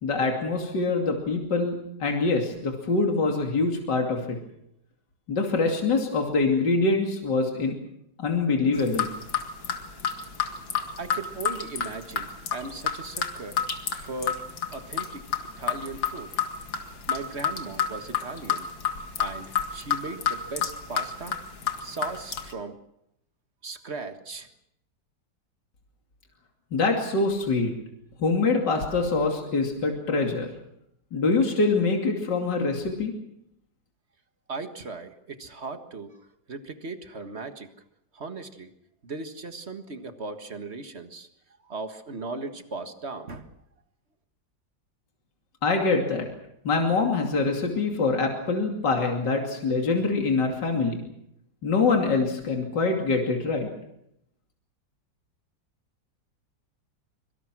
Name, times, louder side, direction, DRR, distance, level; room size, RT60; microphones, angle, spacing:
voice 1, 0.0-4.4 5.3-7.7 8.2-9.1 26.7-27.7 28.2-30.5 31.1-33.1 45.6-46.3 46.6-51.0 51.6-53.7, left 3 dB, 65° left, 2 dB, 3.3 m, -24 dB
sound 1, 8.7-22.5, left 7 dB, 80° left, 2.8 m, -30 dB
voice 2, 11.0-13.6 13.9-14.5 14.7-15.2 15.6-16.3 17.1-18.7 19.2-21.4 21.8-22.8 23.6-24.5 34.5-36.2 36.5-37.7 38.1-38.7 39.0-41.3 41.7-43.5, right 3 dB, 35° right, 8 dB, 1.8 m, -37 dB
25.5 x 24.0 x 6.2 m, 0.78 s
omnidirectional pair, 2.0 m